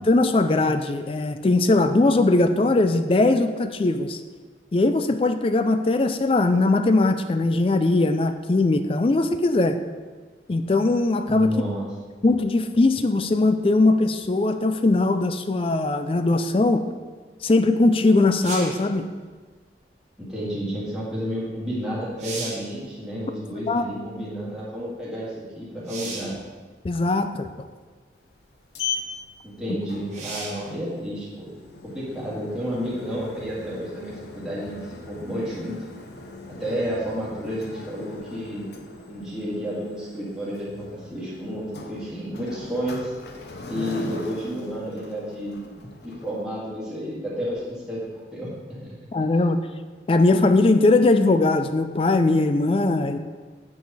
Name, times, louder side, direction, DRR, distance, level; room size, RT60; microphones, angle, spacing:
voice 1, 0.0-4.2 4.7-9.8 10.5-11.6 12.2-16.9 17.4-19.1 23.7-23.9 26.8-27.5 49.1-49.6 50.1-53.2, left 2 dB, 30° left, 9 dB, 0.3 m, -20 dB
voice 2, 11.3-11.9 20.2-26.4 29.4-31.5 31.9-35.8 36.5-38.6 39.1-43.1 43.7-48.0 48.3-49.0 49.3-49.4, equal, 5° right, -9 dB, 1.9 m, -31 dB
sound 1, 18.4-18.9 21.5-21.6 22.0-22.7 25.8-26.4 27.4-27.5 30.1-30.7 34.3-34.4, right 3 dB, 40° right, 1.3 m, -35 dB
Sliding door, 28.2-46.4, left 4 dB, 65° left, 0.7 m, -40 dB
8.1 x 4.8 x 4.1 m, 1.4 s
head